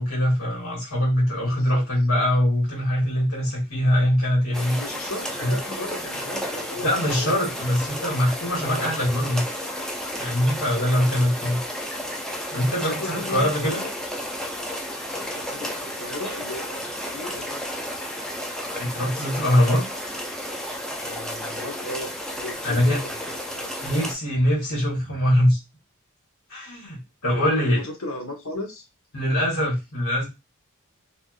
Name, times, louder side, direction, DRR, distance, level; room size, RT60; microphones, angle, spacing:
voice 1, 0.0-4.8 5.4-5.6 6.8-9.4 10.2-11.6 12.5-13.8 18.7-19.8 22.6-23.0 23.8-25.6 26.5-27.8 29.1-30.3, equal, 85° left, -3 dB, 1.7 m, -22 dB
voice 2, 1.4-1.8 3.7-3.8 4.7-6.9 7.1-7.4 8.6-8.9 10.4-10.9 12.8-13.9 15.2-16.8 17.1-17.6 21.0-22.1 22.4-23.7 27.2-28.8, left 1 dB, 65° left, 2 dB, 1.0 m, -36 dB
sound 1, 4.5-24.1, equal, 5° left, 0.4 m, -32 dB
3.4 x 2.5 x 2.3 m, 0.24 s
head